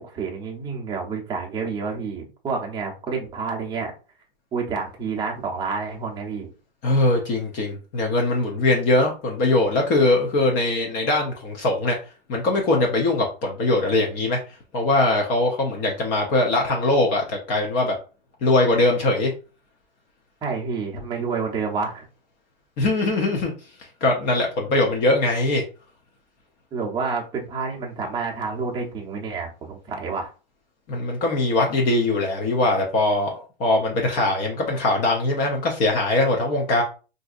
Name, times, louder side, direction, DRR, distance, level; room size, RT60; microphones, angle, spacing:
voice 1, 0.0-3.9 4.5-6.5 20.4-22.1 26.7-30.3, right 5 dB, 15° right, 0.7 m, -29 dB
voice 2, 6.8-12.0 12.3-14.4 14.7-17.9 18.4-19.3 22.8-23.5 23.8-25.6 30.9-36.8, left 2 dB, 30° left, 0.6 m, -21 dB
3.6 x 2.6 x 2.4 m
hypercardioid pair, 140°, 29 cm